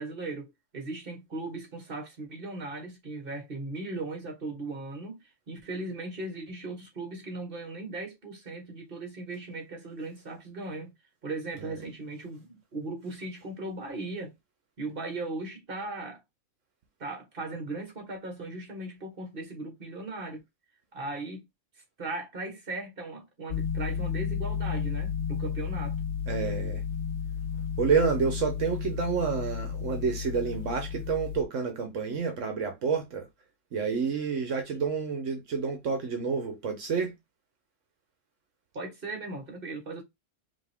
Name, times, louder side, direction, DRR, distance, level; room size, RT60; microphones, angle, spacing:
voice 1, 0.0-5.2 5.5-10.9 11.2-14.3 14.8-16.2 17.0-20.4 20.9-21.4 22.0-26.0 38.7-40.0, right 2 dB, 45° right, 1.8 m, -38 dB
sound 1, 23.5-31.4, left 7 dB, 80° left, 0.3 m, -32 dB
voice 2, 26.3-26.8 27.8-33.3 33.7-37.1, right 5 dB, 80° right, 1.3 m, -29 dB
5.2 x 2.9 x 3.5 m
omnidirectional pair, 1.3 m